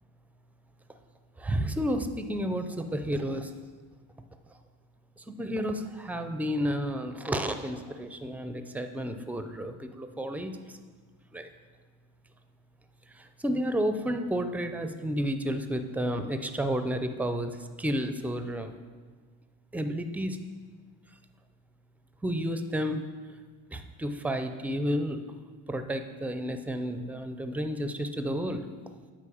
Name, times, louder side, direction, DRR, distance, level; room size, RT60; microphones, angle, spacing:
voice 1, 1.4-3.5 5.3-10.6 11.3-11.5 13.2-17.5 17.8-18.7 19.7-20.4 22.2-23.0 23.7-25.2 25.7-28.7, equal, 5° right, 8 dB, 0.4 m, -31 dB
8.4 x 5.3 x 7.0 m, 1.5 s
cardioid pair, 145°, 35 cm